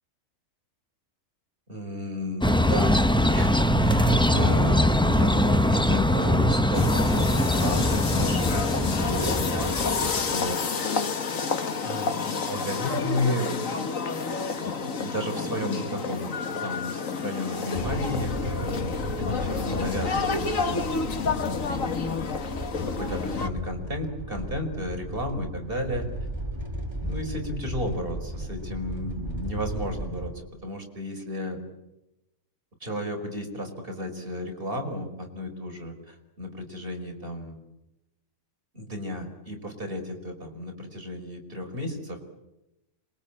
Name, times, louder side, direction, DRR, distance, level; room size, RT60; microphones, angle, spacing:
voice 1, 1.7-3.0 3.2-3.5 3.8-9.7 10.0-10.6 11.8-13.5 14.5-22.2 22.9-26.1 27.0-31.6 32.8-37.6 38.7-42.2, left 1 dB, 35° right, 3 dB, 5.2 m, -33 dB
sound 1, 2.4-10.5, left 1 dB, 5° left, 0.5 m, -22 dB
sound 2, 6.7-23.5, left 5 dB, 60° left, 1.9 m, -29 dB
sound 3, 17.7-30.4, equal, 15° right, 2.6 m, -35 dB
26.5 x 22.5 x 8.8 m, 0.92 s
omnidirectional pair, 1.6 m